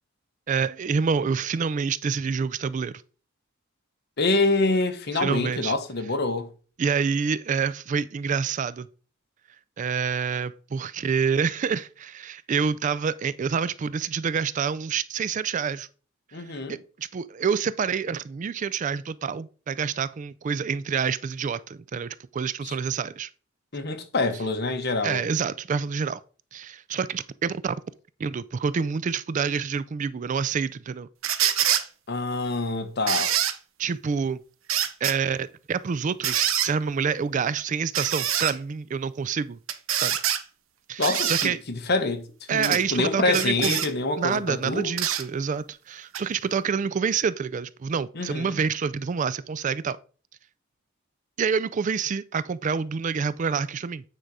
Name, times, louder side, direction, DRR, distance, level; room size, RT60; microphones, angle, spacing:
voice 1, 0.5-3.0 5.1-5.7 6.8-8.9 9.8-15.9 16.3-16.4 16.7-23.3 25.0-26.2 26.5-27.8 28.2-31.1 33.8-34.4 34.7-39.6 39.9-40.2 40.9-41.6 42.5-43.8 44.2-50.0 51.4-54.0, right 6 dB, 35° right, 0.3 m, -27 dB
voice 2, 4.2-6.5 16.3-16.8 22.6-22.8 23.7-25.2 32.1-33.3 41.0-44.9 48.1-48.6, left 3 dB, 50° left, 1.0 m, -26 dB
sound 1, 31.2-31.8 33.1-33.5 34.7-35.2 36.2-36.7 37.9-38.5 39.7-40.4 41.0-41.5 42.6-42.8 43.3-43.9 45.0-45.2 46.1-46.2, right 10 dB, 75° right, 0.8 m, -25 dB
8.8 x 3.9 x 4.7 m
head